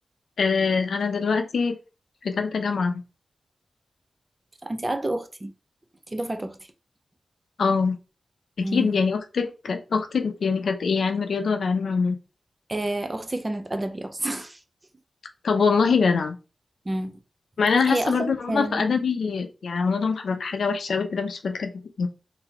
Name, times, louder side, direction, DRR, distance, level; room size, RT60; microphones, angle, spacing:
voice 1, 0.4-1.8 2.2-3.0 7.6-8.0 8.6-12.2 15.4-16.4 17.6-21.7 22.0-22.1, left 5 dB, 85° left, 0.6 m, -24 dB
voice 2, 4.6-5.5 6.1-6.6 8.6-8.9 12.7-14.6 16.9-17.1 17.9-18.9, right 1 dB, 25° right, 0.5 m, -29 dB
4.0 x 2.7 x 4.3 m
wide cardioid pair, 120°, 0 cm